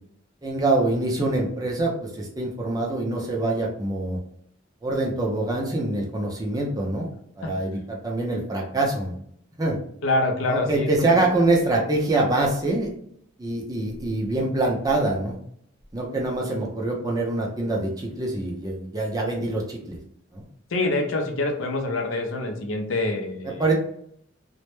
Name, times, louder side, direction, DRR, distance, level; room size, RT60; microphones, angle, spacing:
voice 1, 0.4-4.2 4.8-7.1 7.4-9.1 9.6-9.8 10.5-12.9 13.4-15.4 15.9-20.0 20.3-20.4 23.4-23.7, right 2 dB, 20° right, 0 dB, 0.4 m, -25 dB
voice 2, 10.0-11.2 20.7-23.6, left 2 dB, 85° left, 4 dB, 0.5 m, -26 dB
2.1 x 2.0 x 3.0 m, 0.67 s
head